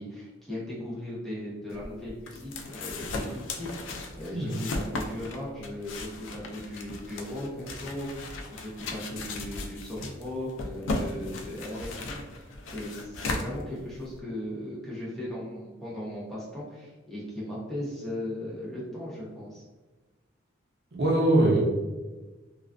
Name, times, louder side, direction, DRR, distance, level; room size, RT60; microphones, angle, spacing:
voice 1, 0.0-2.5 2.8-19.6, left 1 dB, ahead, -7 dB, 0.6 m, -37 dB
sound 1, 1.7-14.2, left 2 dB, 75° left, 0.3 m, -36 dB
voice 2, 20.9-21.6, right 1 dB, 55° right, -3 dB, 0.6 m, -22 dB
2.3 x 2.3 x 2.3 m, 1.2 s
head